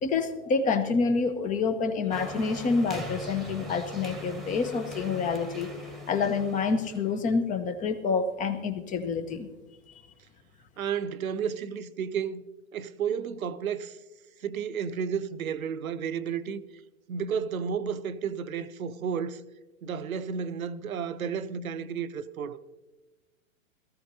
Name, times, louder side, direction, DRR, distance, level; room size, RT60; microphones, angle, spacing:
voice 1, 0.0-5.7 6.1-9.5, left 4 dB, 20° left, 0.9 m, -27 dB
sound 1, 2.1-7.1, left 1 dB, ahead, 1.5 m, -40 dB
voice 2, 10.8-12.4 12.7-14.0 14.4-16.6 17.1-19.4 19.8-22.6, right 7 dB, 80° right, 0.8 m, -32 dB
17.5 x 14.5 x 2.7 m
hypercardioid pair, 120°, 41 cm